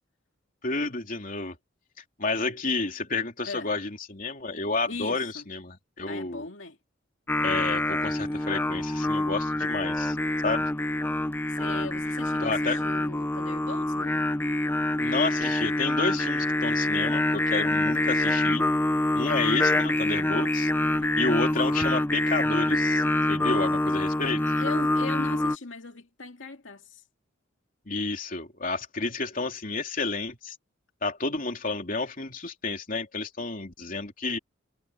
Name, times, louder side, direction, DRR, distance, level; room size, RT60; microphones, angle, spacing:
voice 1, 0.6-1.6 2.2-6.4 7.4-10.2 10.4-10.7 12.4-12.8 15.0-18.6 19.1-20.7 21.2-24.4 27.9-30.5 31.0-34.4, left 3 dB, 45° left, 3.2 m, -30 dB
voice 2, 3.5-3.8 4.9-5.5 6.1-6.8 11.5-14.2 20.9-21.4 24.5-27.0, left 3 dB, 80° left, 2.3 m, -39 dB
Singing, 7.3-25.6, left 1 dB, 10° left, 0.7 m, -26 dB
head